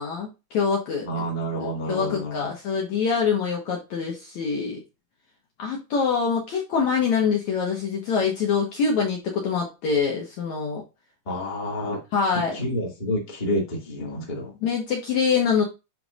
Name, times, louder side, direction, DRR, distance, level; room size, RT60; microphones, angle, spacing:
voice 1, 0.0-1.2 1.6-4.8 5.6-10.8 12.1-12.6 14.6-15.6, left 6 dB, 60° left, -1 dB, 2.3 m, -25 dB
voice 2, 1.0-2.5 11.3-12.0 12.3-14.5, equal, 15° left, -2 dB, 1.9 m, -29 dB
11.0 x 4.6 x 2.5 m, 0.27 s
omnidirectional pair, 4.5 m